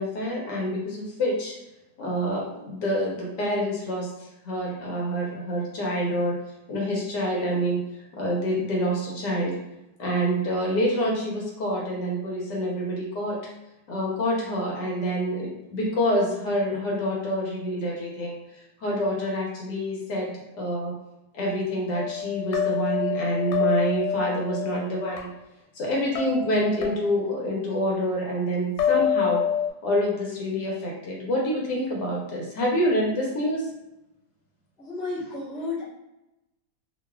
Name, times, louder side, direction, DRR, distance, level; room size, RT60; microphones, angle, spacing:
voice 1, 0.0-1.5 2.0-6.3 6.7-7.8 8.1-9.6 10.0-13.4 13.9-18.3 18.8-20.9 21.3-25.3 25.7-29.4 29.8-33.7, equal, 75° left, -3 dB, 1.4 m, -27 dB
sound 1, 21.9-25.2 26.2-27.4 28.8-29.7, left 8 dB, 90° left, 1.3 m, -27 dB
voice 2, 34.8-35.8, left 3 dB, ahead, -10 dB, 0.4 m, -32 dB
3.1 x 2.4 x 2.2 m, 0.91 s
omnidirectional pair, 1.9 m